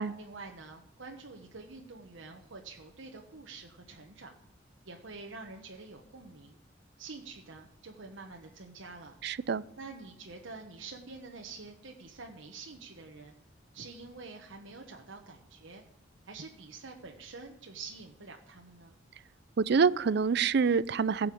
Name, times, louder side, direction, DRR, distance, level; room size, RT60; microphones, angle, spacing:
voice 1, 0.2-4.3 4.8-6.6 7.0-9.1 9.8-13.3 13.7-15.8 16.2-18.9, right 3 dB, 80° right, 1 dB, 1.2 m, -47 dB
voice 2, 9.2-9.6 19.6-21.3, right 5 dB, 60° right, 19 dB, 0.4 m, -26 dB
16.0 x 5.7 x 8.4 m, 0.78 s
head